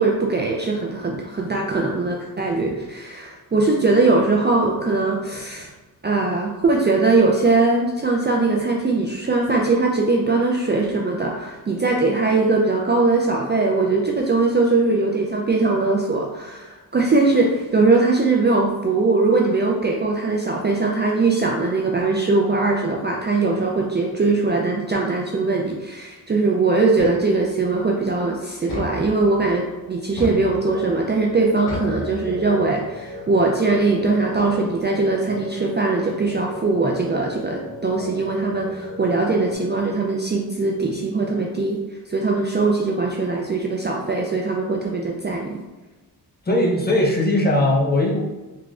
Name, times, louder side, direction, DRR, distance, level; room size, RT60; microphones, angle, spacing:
voice 1, 0.0-5.7 6.0-41.8 42.1-45.6, right 3 dB, 25° right, -1 dB, 0.4 m, -21 dB
sound 1, 27.0-27.7 28.7-29.5 30.2-31.0 31.7-32.7, left 1 dB, 65° left, 0.9 m, -33 dB
sound 2, 30.4-39.5, left 1 dB, 40° left, 1.3 m, -37 dB
voice 2, 46.5-48.2, left 1 dB, 25° left, -2 dB, 0.7 m, -19 dB
3.5 x 3.0 x 2.4 m, 1.2 s
cardioid pair, 85°, 40 cm